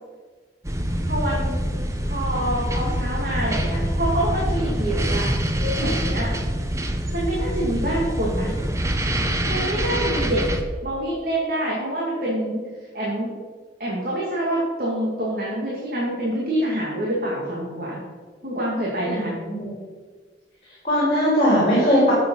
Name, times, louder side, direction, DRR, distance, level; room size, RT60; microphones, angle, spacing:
sound 1, 0.6-10.6, equal, 15° right, 0.9 m, -25 dB
voice 1, 1.1-1.6 2.1-5.3 5.6-6.3 7.1-8.5 9.4-10.5 10.8-12.6 12.9-13.3 13.8-18.0 18.4-19.3, right 1 dB, 50° right, -4 dB, 2.3 m, -26 dB
voice 2, 19.0-19.8 20.8-22.1, equal, 30° left, -7 dB, 3.7 m, -20 dB
11.5 x 7.7 x 5.5 m, 1.5 s
head